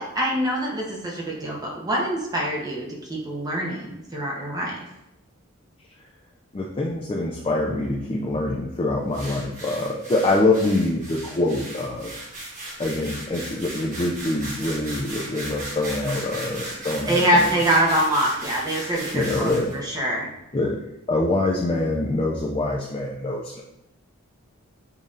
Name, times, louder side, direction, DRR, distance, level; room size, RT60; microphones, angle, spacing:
voice 1, 0.0-4.9 17.1-20.3, right 1 dB, 15° right, -2 dB, 0.7 m, -24 dB
voice 2, 6.5-12.1 12.8-17.5 19.1-19.8 20.5-20.8 21.1-23.6, left 2 dB, 25° left, -2 dB, 0.4 m, -25 dB
sound 1, 9.1-19.8, right 1 dB, 35° right, 1.2 m, -36 dB
7.1 x 2.7 x 2.5 m, 0.86 s
head